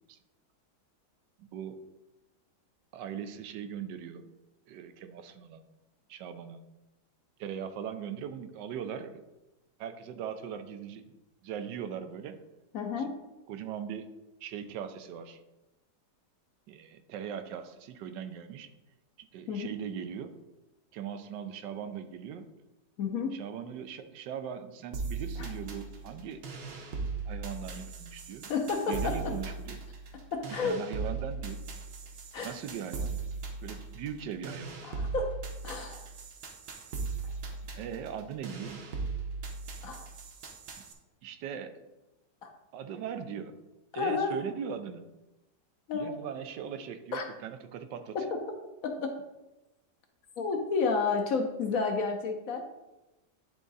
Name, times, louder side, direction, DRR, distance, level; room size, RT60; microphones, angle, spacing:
voice 1, 1.4-1.8 2.9-4.3 4.7-5.6 6.1-6.6 7.4-9.2 9.8-11.2 11.4-12.4 13.0-13.1 13.5-14.2 14.4-15.4 16.7-18.7 19.2-20.3 20.9-22.5 23.3-26.4 27.3-28.5 28.9-29.8 30.5-31.7 32.4-33.2 33.6-34.7 37.8-38.9 40.8-40.9 41.2-41.8 42.7-43.6 43.9-45.1 45.9-48.2, right 8 dB, 85° right, 9 dB, 1.3 m, -40 dB
voice 2, 12.7-13.2 19.5-19.7 23.0-23.4 25.4-25.5 28.5-29.4 30.3-30.8 32.3-32.5 34.8-35.4 35.6-36.1 37.2-37.3 39.8-40.1 42.4-42.5 43.9-44.4 45.9-46.2 47.1-47.3 48.1-48.4 48.8-49.2 50.4-52.6, left 4 dB, 60° left, 4 dB, 1.0 m, -31 dB
sound 1, 24.9-40.9, right 4 dB, 65° right, 1.5 m, -39 dB
10.0 x 3.7 x 4.0 m, 1.0 s
omnidirectional pair, 1.9 m